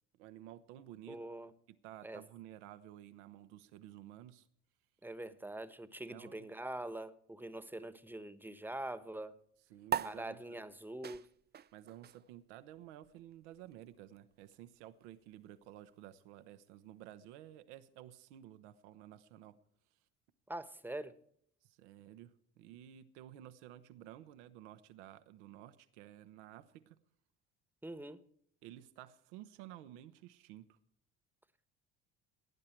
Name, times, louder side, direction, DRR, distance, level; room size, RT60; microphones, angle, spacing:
voice 1, 0.2-1.2 1.7-4.5 6.1-6.5 9.7-10.6 11.7-19.6 21.6-27.0 28.6-30.8, right 12 dB, 80° right, 12 dB, 1.0 m, -53 dB
voice 2, 1.1-1.5 2.0-2.2 5.0-9.3 10.0-11.2 20.5-21.1 27.8-28.2, right 1 dB, 5° right, 13 dB, 1.2 m, -44 dB
sound 1, 9.9-16.7, right 9 dB, 30° right, 0.5 m, -44 dB
17.5 x 9.7 x 4.5 m, 0.66 s
hypercardioid pair, 60°, 35 cm